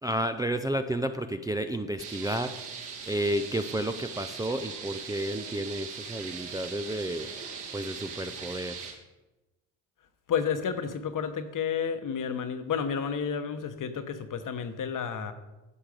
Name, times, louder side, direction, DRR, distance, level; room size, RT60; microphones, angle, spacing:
voice 1, 0.0-2.7 3.1-8.8, right 1 dB, 10° right, 7 dB, 0.5 m, -31 dB
sound 1, 2.0-8.9, right 6 dB, 60° right, 2.5 m, -40 dB
voice 2, 10.3-15.3, left 7 dB, 45° left, 10 dB, 1.1 m, -31 dB
11.0 x 7.4 x 5.1 m, 1.1 s
supercardioid pair, 70°, 44 cm